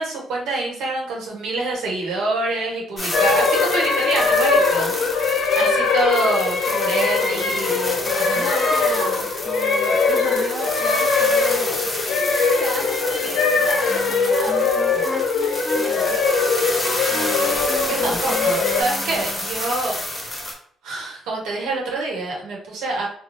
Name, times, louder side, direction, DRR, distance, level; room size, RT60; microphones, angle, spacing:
voice 1, 0.0-4.9 5.5-8.5 17.8-20.0 20.2-20.4 20.8-23.1, right 2 dB, 90° right, -2 dB, 1.1 m, -26 dB
sound 1, 3.0-20.5, left 1 dB, 25° left, 1.0 m, -30 dB
sound 2, 3.1-18.8, left 4 dB, 75° left, 0.5 m, -21 dB
voice 2, 6.8-11.9 12.2-15.2 15.7-16.2 17.1-17.7 17.9-18.4, right 3 dB, 45° right, 1 dB, 0.4 m, -36 dB
Wind instrument woodwind instrument, 13.9-19.6, equal, ahead, 0.6 m, -34 dB
2.7 x 2.3 x 3.1 m, 0.62 s
cardioid pair, 90°, 0 cm